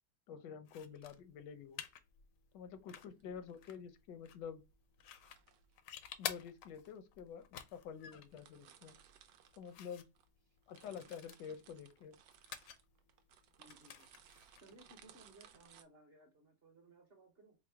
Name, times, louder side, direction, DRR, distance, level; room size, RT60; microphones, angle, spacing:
voice 1, 0.3-1.8 2.5-4.6 6.2-9.0 9.5-10.1 10.7-12.2, left 7 dB, 85° left, 1.3 m, -49 dB
sound 1, 0.7-15.8, left 9 dB, 70° left, 0.8 m, -52 dB
sound 2, 3.0-3.2 5.1-5.7 6.6-6.7 7.4-7.5 7.7-7.8 8.0-10.3 10.6-15.8, right 9 dB, 80° right, 1.2 m, -63 dB
voice 2, 3.2-3.6 10.5-10.6 13.6-14.1 14.6-17.6, right 2 dB, 40° right, 1.0 m, -62 dB
4.8 x 2.0 x 3.4 m
omnidirectional pair, 1.8 m